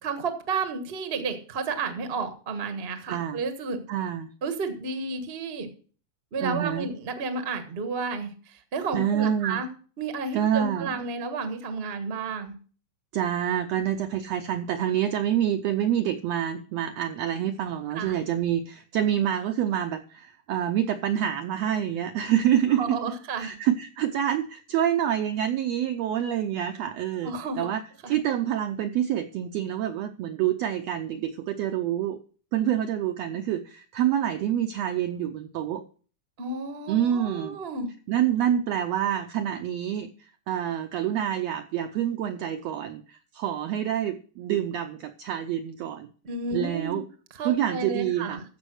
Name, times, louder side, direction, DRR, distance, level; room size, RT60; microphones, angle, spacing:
voice 1, 0.0-3.8 4.4-5.7 6.3-9.7 10.0-12.5 17.9-18.1 22.8-23.6 27.2-27.7 28.0-28.1 36.4-37.9 46.2-47.0 47.4-48.4, right 4 dB, 55° right, 7 dB, 0.6 m, -31 dB
voice 2, 3.1-3.4 3.9-4.3 6.4-6.9 8.9-9.6 10.3-11.0 13.1-23.0 23.4-27.8 28.1-32.2 32.5-35.8 36.9-37.6 38.1-46.1 46.5-47.0 47.4-48.4, right 10 dB, 80° right, 7 dB, 1.5 m, -27 dB
14.5 x 5.4 x 6.3 m, 0.41 s
omnidirectional pair, 3.6 m